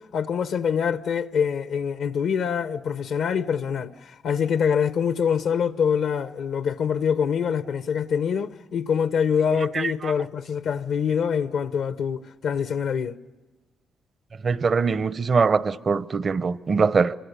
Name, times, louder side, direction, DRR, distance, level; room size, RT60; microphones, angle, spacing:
voice 1, 0.0-13.2, left 7 dB, 75° left, 1.0 m, -25 dB
voice 2, 14.4-17.1, right 5 dB, 45° right, 0.8 m, -22 dB
26.5 x 25.5 x 6.8 m
supercardioid pair, 65°, 0 cm